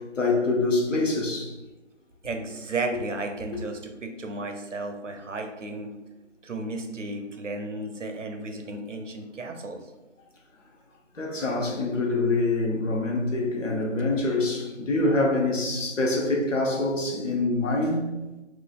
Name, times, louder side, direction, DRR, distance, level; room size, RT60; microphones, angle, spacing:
voice 1, 0.0-1.5 3.5-3.6 11.1-18.1, left 2 dB, 85° left, 0.9 m, -25 dB
voice 2, 2.2-5.9 6.4-9.8, right 2 dB, 80° right, 0.6 m, -33 dB
3.7 x 2.4 x 2.3 m
figure-of-eight pair, 180°, 37 cm